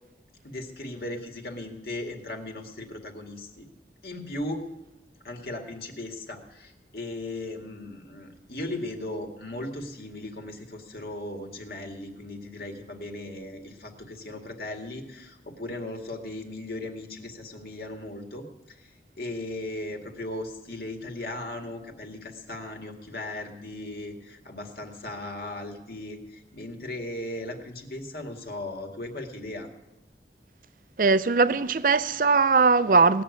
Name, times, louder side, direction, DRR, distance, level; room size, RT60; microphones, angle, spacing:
voice 1, 0.4-3.7 4.0-4.6 5.2-29.7, left 1 dB, 60° left, 2.1 m, -37 dB
voice 2, 31.0-33.2, right 4 dB, 50° right, 0.5 m, -20 dB
18.5 x 6.8 x 9.6 m
head